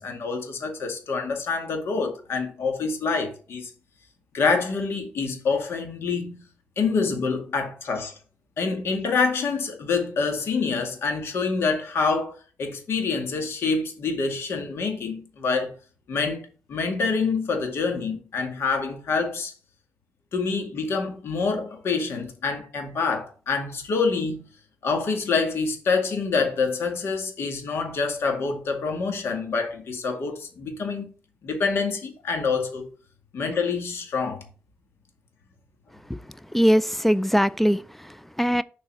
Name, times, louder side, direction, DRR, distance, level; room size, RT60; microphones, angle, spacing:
voice 1, 0.0-3.7 4.3-6.4 6.8-8.1 8.6-15.7 16.1-19.5 20.3-24.4 24.8-31.0 31.4-32.9 33.3-34.5, left 4 dB, 70° left, 2.1 m, -26 dB
voice 2, 36.5-38.6, equal, 5° left, 0.3 m, -21 dB
7.4 x 4.6 x 6.2 m
wide cardioid pair, 140°, 4 cm